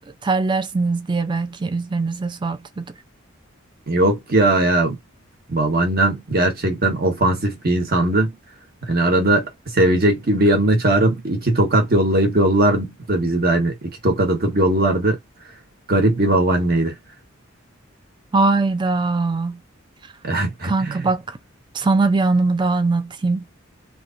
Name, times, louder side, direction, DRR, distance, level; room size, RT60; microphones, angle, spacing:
voice 1, 0.2-2.9 18.3-19.6 20.6-21.4 21.7-23.4, right 3 dB, 25° right, 0.4 m, -21 dB
voice 2, 3.9-5.0 5.5-8.3 8.9-9.5 9.7-13.7 14.0-15.2 15.9-16.9 20.2-21.0, right 1 dB, 50° right, 1.3 m, -19 dB
3.1 x 2.7 x 2.6 m
head